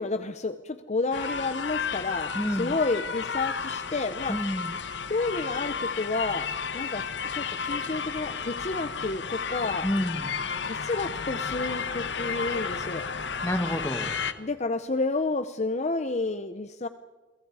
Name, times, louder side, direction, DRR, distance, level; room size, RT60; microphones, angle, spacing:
voice 1, 0.0-4.4 5.1-7.1 7.3-9.9 10.6-13.0 14.4-16.9, left 3 dB, 35° left, 10 dB, 0.7 m, -30 dB
sound 1, 1.1-14.3, left 6 dB, 65° left, 1.3 m, -32 dB
voice 2, 2.3-2.7 4.3-4.8 9.8-10.4 13.4-14.1, equal, 15° left, 8 dB, 1.6 m, -29 dB
29.5 x 23.5 x 4.9 m, 1.2 s
head